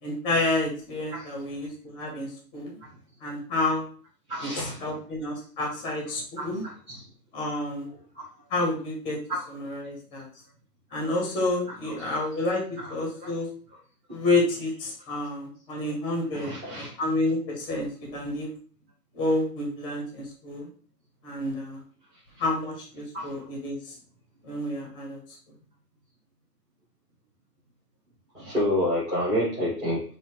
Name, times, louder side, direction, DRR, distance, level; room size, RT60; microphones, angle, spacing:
voice 1, 0.0-2.7 3.2-3.8 4.4-6.6 7.3-7.9 8.5-9.2 9.5-10.3 10.9-12.6 12.9-13.5 14.1-18.5 19.1-20.7 21.2-21.8 22.4-23.9 24.4-25.2, left 2 dB, 10° left, 0 dB, 0.9 m, -29 dB
voice 2, 4.3-5.0 6.4-7.0 8.1-8.3 9.3-9.4 11.7-12.0 12.7-13.3 16.3-16.9 23.1-23.3 28.3-30.0, left 1 dB, 10° right, -10 dB, 1.1 m, -29 dB
5.5 x 2.7 x 3.0 m, 0.42 s
hypercardioid pair, 140°, 50 cm